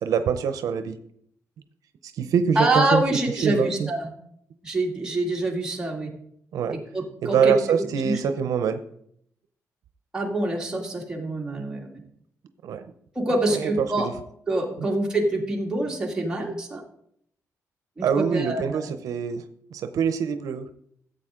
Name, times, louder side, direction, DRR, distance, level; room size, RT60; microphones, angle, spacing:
voice 1, 0.0-1.0 2.1-3.0 3.4-3.9 6.5-6.8 7.2-8.8 12.6-12.8 13.5-14.1 18.0-19.4 19.7-20.8, right 7 dB, 80° right, 9 dB, 0.6 m, -24 dB
voice 2, 2.6-4.1 4.6-6.1 6.9-7.5 8.0-8.2 10.1-11.8 13.2-14.1 14.5-16.8 18.0-18.8, right 2 dB, 15° right, -2 dB, 2.2 m, -25 dB
14.0 x 8.1 x 3.7 m, 0.70 s
wide cardioid pair, 145°, 6 cm